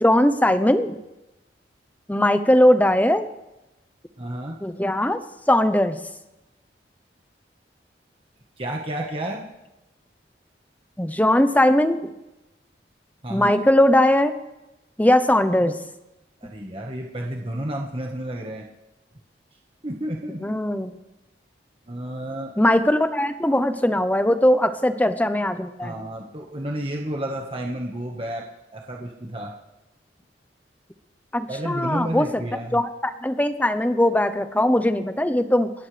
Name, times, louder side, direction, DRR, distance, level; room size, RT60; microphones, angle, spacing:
voice 1, 0.0-1.0 2.1-3.3 4.6-5.2 5.5-6.0 11.0-12.1 13.3-14.3 15.0-15.8 20.4-20.9 22.6-26.0 31.3-32.3 32.7-35.7, left 1 dB, 10° left, 10 dB, 0.8 m, -20 dB
voice 2, 4.2-4.6 8.6-9.5 13.2-13.5 16.4-18.6 19.8-20.5 21.9-22.5 25.8-28.4 28.7-29.5 31.5-32.8, right 1 dB, 30° right, 0 dB, 1.5 m, -31 dB
29.0 x 14.0 x 3.4 m, 0.98 s
head